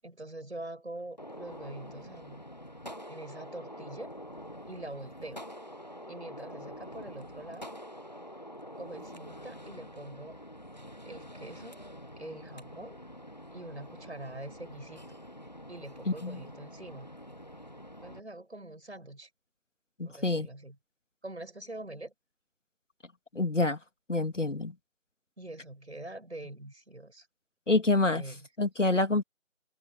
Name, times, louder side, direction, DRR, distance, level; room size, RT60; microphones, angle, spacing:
voice 1, 0.0-2.4 3.1-4.1 4.7-5.4 6.1-7.7 8.8-10.4 11.0-11.8 12.2-13.0 13.5-15.2 15.7-17.1 18.0-19.3 20.0-20.8 21.2-22.1 25.4-27.3 28.1-28.5, right 1 dB, 55° right, 7.9 m, -44 dB
Gunshot gunfire, 1.2-18.2, equal, 35° left, 1.3 m, -46 dB
voice 2, 16.1-16.4 20.0-20.5 23.3-23.8 24.1-24.7 27.7-28.2 28.6-29.2, left 2 dB, 65° left, 2.5 m, -27 dB
figure-of-eight pair, 170°, 40 cm